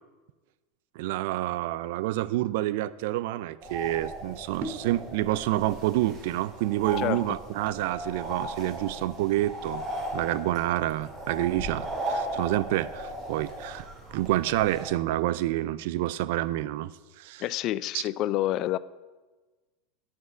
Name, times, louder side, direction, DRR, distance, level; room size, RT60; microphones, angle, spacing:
voice 1, 1.0-9.8 10.1-16.9 17.2-17.4 17.9-18.0, right 15 dB, 65° right, 17 dB, 0.4 m, -28 dB
sound 1, 3.6-14.9, right 1 dB, 40° right, 2.1 m, -37 dB
voice 2, 17.4-18.8, left 14 dB, 50° left, 18 dB, 0.4 m, -28 dB
7.1 x 6.1 x 7.7 m, 1.3 s
hypercardioid pair, 85°, 0 cm